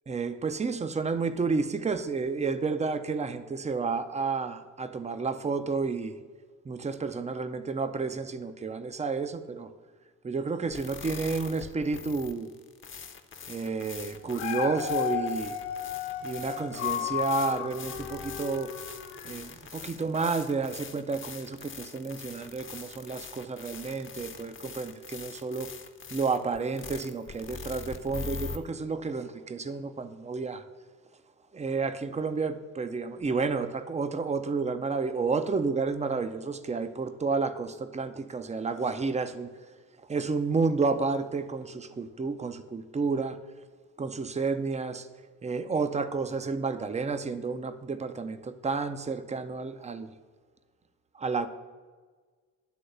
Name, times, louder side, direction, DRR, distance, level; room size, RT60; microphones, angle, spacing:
voice 1, 0.1-6.2 6.7-9.7 10.2-12.5 13.5-15.5 16.2-18.7 19.2-25.7 26.1-30.6 31.5-39.5 40.1-43.4 44.0-45.1 45.4-50.1 51.2-51.5, right 4 dB, 15° right, 10 dB, 0.5 m, -31 dB
sound 1, 10.7-28.6, left 5 dB, 25° left, 0.8 m, -43 dB
Dog, 14.1-19.5 20.0-20.1, left 10 dB, 80° left, 0.8 m, -34 dB
10.0 x 3.8 x 6.5 m, 1.5 s
hypercardioid pair, 50°, 48 cm